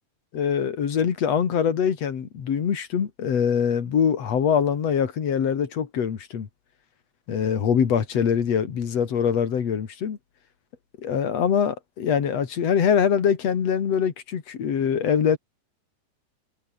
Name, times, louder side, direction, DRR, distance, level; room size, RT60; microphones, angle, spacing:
voice 1, 0.3-6.5 7.3-10.2 11.0-15.4, left 7 dB, 45° left, 2.9 m, -23 dB
omnidirectional pair, 4.7 m